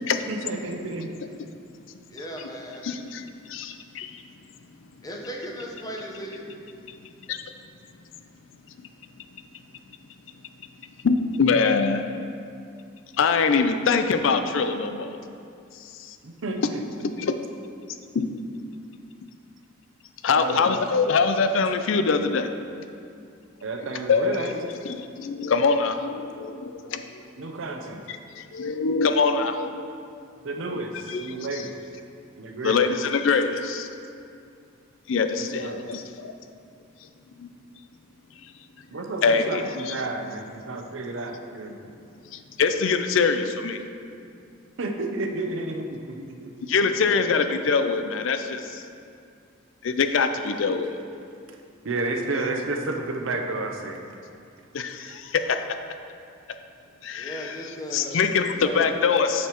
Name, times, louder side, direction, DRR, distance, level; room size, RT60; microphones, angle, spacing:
voice 1, 0.3-1.1 16.2-16.8 20.3-20.7 23.6-24.6 27.4-28.0 30.4-31.7 32.4-32.9 35.3-35.9 38.9-41.8 44.8-46.5 51.8-54.0, right 2 dB, 80° right, 4 dB, 0.7 m, -31 dB
voice 2, 2.0-2.8 5.0-6.5 57.1-58.2 58.5-58.9, equal, 20° left, -2 dB, 0.9 m, -37 dB
voice 3, 2.8-3.2 3.5-4.1 7.3-7.4 11.0-12.0 13.2-15.2 17.2-17.4 18.1-18.3 20.2-22.5 24.1-24.6 24.8-27.1 28.4-29.9 30.7-30.8 31.1-31.3 32.6-33.9 35.1-36.3 37.4-37.5 39.2-39.9 42.6-43.8 46.7-48.8 49.8-50.9 54.7-55.6 57.0-57.6 57.9-59.5, left 5 dB, 75° left, 8 dB, 0.4 m, -23 dB
8.9 x 6.4 x 3.0 m, 2.4 s
head